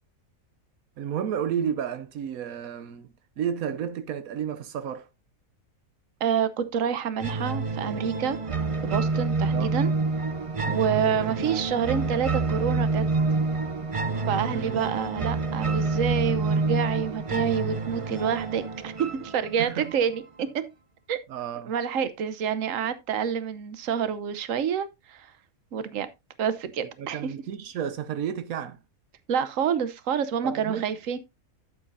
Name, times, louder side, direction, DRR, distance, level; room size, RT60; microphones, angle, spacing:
voice 1, 1.0-5.1 9.5-9.7 11.2-11.5 14.4-14.8 19.6-19.8 21.3-21.7 27.0-28.8 30.4-30.8, right 8 dB, 85° right, 1.2 m, -32 dB
voice 2, 6.2-8.4 8.8-9.9 10.7-13.0 14.3-20.6 21.1-21.2 21.7-25.3 25.7-26.1 26.4-27.3 29.3-31.2, right 7 dB, 65° right, 1.3 m, -28 dB
sound 1, 7.2-20.2, right 3 dB, 35° right, 0.6 m, -28 dB
12.0 x 7.3 x 2.7 m
omnidirectional pair, 1.5 m